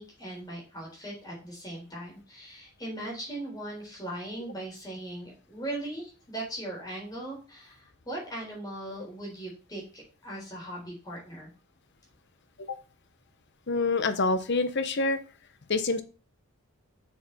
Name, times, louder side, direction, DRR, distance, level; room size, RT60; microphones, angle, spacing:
voice 1, 0.0-11.5, right 1 dB, 20° left, -3 dB, 4.0 m, -39 dB
voice 2, 13.7-15.2 15.7-16.0, left 3 dB, 55° left, 10 dB, 0.8 m, -26 dB
6.7 x 6.6 x 4.1 m, 0.35 s
head